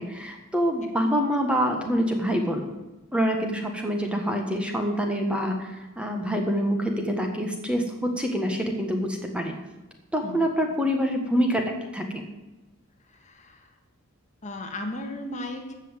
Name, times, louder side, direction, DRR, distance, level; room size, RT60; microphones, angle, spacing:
voice 1, 0.0-2.7 3.1-9.5 10.1-12.2, equal, 5° right, 3 dB, 1.5 m, -26 dB
voice 2, 13.1-13.7 14.4-15.7, left 1 dB, 35° left, 4 dB, 1.6 m, -35 dB
15.0 x 5.7 x 8.2 m, 1.1 s
head